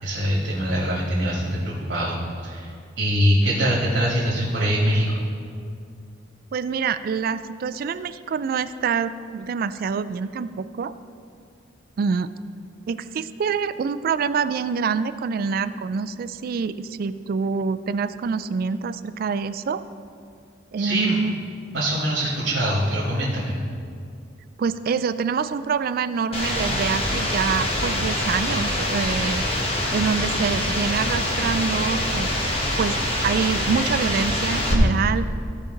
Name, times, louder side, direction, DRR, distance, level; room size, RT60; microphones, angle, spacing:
voice 1, 0.0-2.2 2.4-2.7 3.0-5.1 20.8-21.2 21.7-23.6, equal, 75° right, -6 dB, 1.8 m, -23 dB
voice 2, 6.5-10.9 12.0-12.3 12.9-19.8 20.7-21.3 24.6-29.4 29.9-32.3 32.8-35.3, right 5 dB, 50° right, 13 dB, 0.3 m, -26 dB
sound 1, 26.3-34.7, left 1 dB, 35° left, 1.4 m, -25 dB
15.0 x 5.1 x 3.8 m, 2.3 s
head